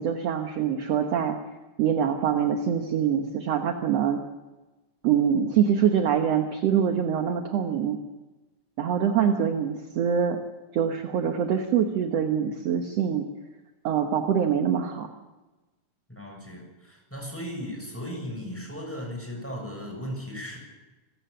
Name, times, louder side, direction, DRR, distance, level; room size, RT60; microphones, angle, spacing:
voice 1, 0.0-1.4 1.8-4.2 5.0-8.0 8.8-10.4 10.7-13.3 13.8-15.1, right 8 dB, 60° right, 5 dB, 2.1 m, -24 dB
voice 2, 16.1-20.6, equal, 5° left, 1 dB, 6.9 m, -36 dB
26.5 x 15.5 x 6.8 m, 1.1 s
omnidirectional pair, 3.6 m